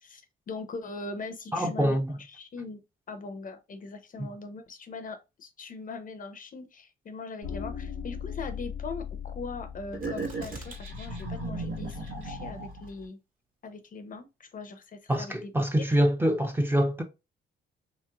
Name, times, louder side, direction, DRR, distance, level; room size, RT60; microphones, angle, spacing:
voice 1, 0.0-2.8 3.1-13.2 13.6-15.5, left 3 dB, 45° left, 0.6 m, -41 dB
voice 2, 1.5-2.2 4.2-4.3 15.1-17.0, equal, 10° right, 0.6 m, -25 dB
sound 1, 7.4-12.5, left 8 dB, 75° left, 0.8 m, -39 dB
sound 2, 9.9-13.0, right 3 dB, 75° right, 1.2 m, -36 dB
sound 3, 10.0-10.9 11.2-11.3 11.9-12.3 12.9-13.0, right 3 dB, 45° right, 1.4 m, -45 dB
3.1 x 3.0 x 2.3 m
cardioid pair, 90°, 20 cm